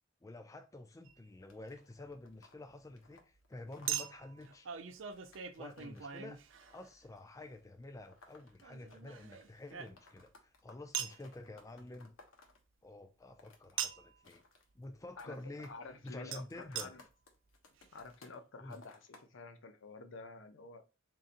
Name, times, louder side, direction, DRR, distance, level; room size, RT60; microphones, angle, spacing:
voice 1, 0.2-4.7 5.6-6.4 6.7-12.2 12.8-14.4 14.7-15.7 16.0-16.9 18.6-18.8, left 2 dB, 15° left, 0.4 m, -49 dB
Chink clink, 1.1-1.2 3.9-7.1 8.6-10.3 10.9-11.2 13.8-14.2 16.3-16.4 16.8-16.9 17.5-17.6 17.8-17.9, right 9 dB, 65° right, 0.5 m, -41 dB
sound 1, 1.5-9.3 9.6-12.6 13.2-13.8 14.1-14.8 15.2-15.8 16.1-18.4 18.7-19.3, left 3 dB, 85° left, 1.1 m, -62 dB
voice 2, 15.2-17.0 17.9-20.8, left 3 dB, 65° left, 0.7 m, -50 dB
4.0 x 3.7 x 2.5 m
head